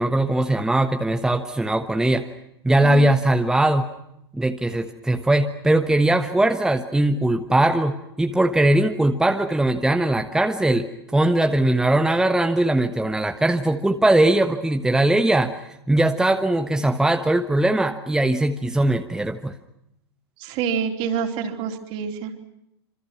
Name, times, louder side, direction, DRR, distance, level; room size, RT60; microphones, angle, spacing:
voice 1, 0.0-2.3 2.6-3.9 4.3-15.6 15.9-19.5, right 1 dB, 5° right, 6 dB, 1.2 m, -20 dB
voice 2, 20.4-22.3, right 7 dB, 45° right, 3 dB, 3.9 m, -27 dB
27.0 x 26.0 x 6.0 m, 0.82 s
figure-of-eight pair, 95°, 13 cm